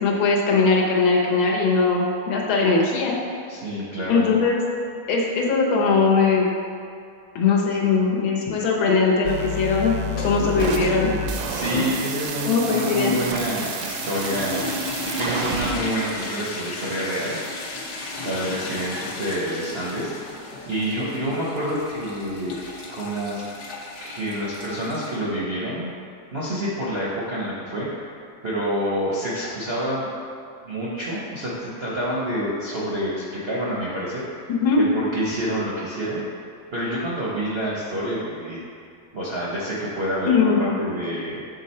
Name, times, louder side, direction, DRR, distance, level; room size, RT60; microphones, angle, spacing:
voice 1, 0.0-3.2 4.1-4.6 5.1-6.5 7.3-9.9 10.2-11.1 11.7-11.9 12.4-13.1 34.5-34.8 40.3-40.8, left 4 dB, 85° left, -1 dB, 1.7 m, -20 dB
voice 2, 3.5-4.3 10.5-10.7 11.5-14.7 15.2-17.4 18.2-20.1 20.7-22.6 22.9-23.4 24.0-25.9 26.3-28.1 28.4-30.1 30.6-34.4 34.8-36.2 36.7-38.6 39.1-40.5 40.8-41.4, equal, 55° right, -7 dB, 0.7 m, -28 dB
sound 1, 9.2-15.7, right 2 dB, 75° right, 1.2 m, -30 dB
sound 2, 10.0-25.2, left 2 dB, 55° left, 1.3 m, -35 dB
7.2 x 3.8 x 4.2 m, 2.4 s
omnidirectional pair, 2.2 m